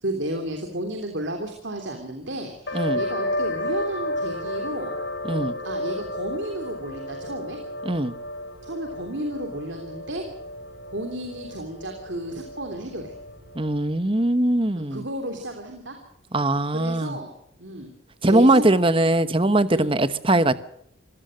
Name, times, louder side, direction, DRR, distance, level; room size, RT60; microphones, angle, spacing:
voice 1, 0.0-4.9 5.3-7.6 8.6-10.2 10.9-13.1 14.8-16.0 16.7-17.3 17.6-17.9 18.2-18.6 19.7-19.9, right 1 dB, 65° right, 3.3 m, -32 dB
sound 1, 2.7-14.0, left 1 dB, 60° left, 5.8 m, -32 dB
voice 2, 5.2-5.6 7.8-8.1 13.5-15.1 16.3-17.2 18.2-20.5, right 1 dB, 25° right, 1.0 m, -21 dB
26.0 x 17.0 x 6.5 m
head